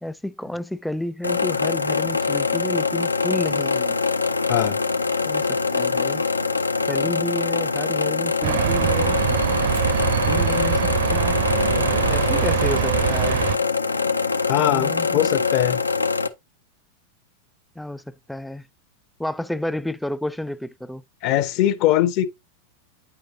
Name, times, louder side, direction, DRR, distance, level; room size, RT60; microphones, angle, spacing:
voice 1, 0.0-4.0 5.3-6.2 6.9-9.2 10.3-13.4 14.6-15.2 17.8-18.7 19.2-21.0, left 1 dB, 5° left, 0.4 m, -31 dB
sound 1, 1.2-16.3, left 4 dB, 80° left, 0.5 m, -23 dB
voice 2, 4.5-4.8 7.1-7.2 14.5-15.8 21.2-22.3, left 13 dB, 40° left, 0.8 m, -21 dB
sound 2, 8.4-13.6, right 12 dB, 55° right, 0.5 m, -23 dB
9.5 x 5.8 x 2.7 m
figure-of-eight pair, 90°, 0 cm